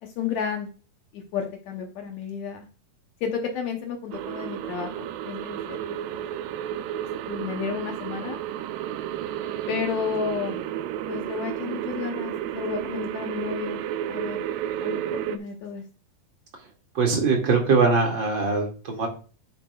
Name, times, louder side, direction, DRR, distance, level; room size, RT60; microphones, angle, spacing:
voice 1, 0.0-0.7 1.1-2.7 3.2-6.2 7.3-8.4 9.7-10.7 11.1-14.4 14.8-15.8, left 7 dB, 80° left, 3 dB, 1.6 m, -32 dB
sound 1, 4.1-15.4, right 11 dB, 90° right, 2.7 m, -32 dB
voice 2, 16.9-19.1, right 4 dB, 35° right, 1 dB, 2.3 m, -22 dB
10.5 x 7.7 x 2.4 m, 0.36 s
omnidirectional pair, 4.5 m